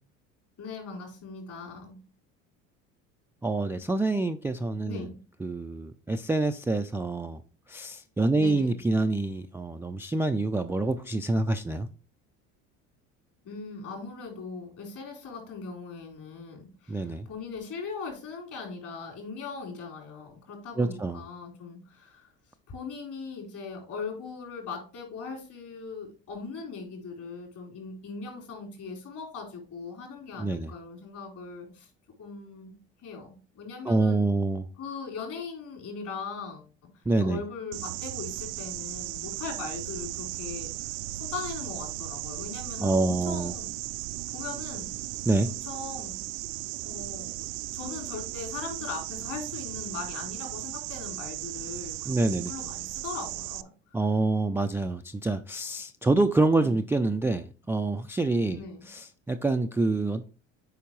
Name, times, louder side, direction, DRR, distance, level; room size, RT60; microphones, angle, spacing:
voice 1, 0.6-2.0 4.9-5.2 8.3-8.7 13.4-22.3 22.7-31.9 32.2-32.8 33.0-33.3 33.5-34.2 34.8-40.9 41.2-43.7 44.3-44.9 45.4-46.2 46.8-47.3 47.7-54.0 58.5-58.9, left 4 dB, 50° left, 4.1 m, -40 dB
voice 2, 3.4-5.1 5.4-7.4 7.7-11.9 16.9-17.3 20.8-21.2 30.4-30.7 33.9-34.6 37.1-37.4 42.8-43.5 45.3-45.5 52.1-52.5 53.9-60.3, right 2 dB, 5° right, 0.3 m, -26 dB
sound 1, 37.7-53.6, right 18 dB, 65° right, 0.5 m, -36 dB
8.5 x 5.0 x 3.1 m
hypercardioid pair, 70°, 37 cm